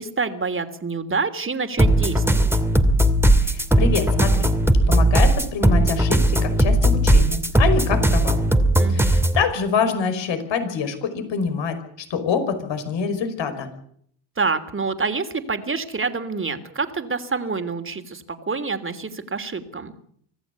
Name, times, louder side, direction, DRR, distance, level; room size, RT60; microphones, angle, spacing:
voice 1, 0.0-2.5 8.8-9.1 14.4-19.9, right 4 dB, 25° right, 9 dB, 3.2 m, -27 dB
sound 1, 1.8-9.4, right 1 dB, 5° right, 2.4 m, -18 dB
voice 2, 3.4-4.5 4.9-8.4 8.9-13.7, left 6 dB, 60° left, 9 dB, 5.5 m, -25 dB
25.5 x 15.5 x 8.4 m, 0.65 s
supercardioid pair, 85°, 49 cm